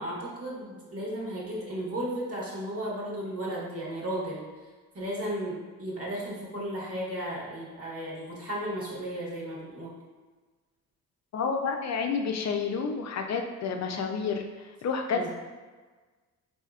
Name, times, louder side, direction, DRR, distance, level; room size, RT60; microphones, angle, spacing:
voice 1, 0.0-4.4 4.9-9.9 15.1-15.3, right 1 dB, 40° right, -5 dB, 1.4 m, -34 dB
voice 2, 11.3-14.5 14.8-15.3, left 5 dB, 45° left, 4 dB, 0.5 m, -29 dB
4.1 x 2.8 x 2.4 m, 1.4 s
supercardioid pair, 55°, 36 cm